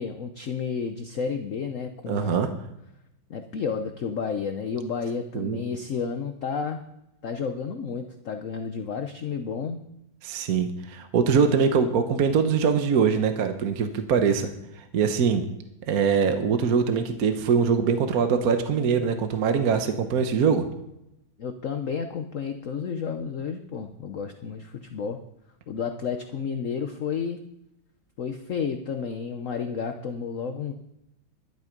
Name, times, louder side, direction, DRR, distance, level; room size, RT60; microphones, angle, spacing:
voice 1, 0.0-2.5 3.3-6.8 7.2-9.8 21.4-25.2 25.7-27.4 28.2-30.7, left 6 dB, 55° left, 7 dB, 0.9 m, -31 dB
voice 2, 2.1-2.5 5.3-5.6 10.2-15.4 15.9-20.6, right 6 dB, 50° right, 7 dB, 1.3 m, -23 dB
12.0 x 12.0 x 5.2 m, 0.85 s
omnidirectional pair, 2.3 m